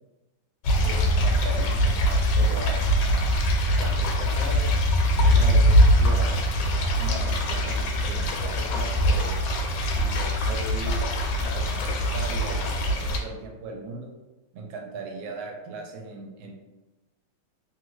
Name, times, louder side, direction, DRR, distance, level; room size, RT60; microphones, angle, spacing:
Water in drain pipe with thunder Mono, 0.6-13.2, equal, 85° left, 1.4 m, -22 dB
voice 1, 0.8-4.6 5.1-7.8 8.0-9.4 9.9-11.0 11.4-14.1 14.5-16.5, right 3 dB, 80° right, 1 dB, 1.4 m, -38 dB
3.3 x 2.4 x 3.0 m, 1.1 s
omnidirectional pair, 2.2 m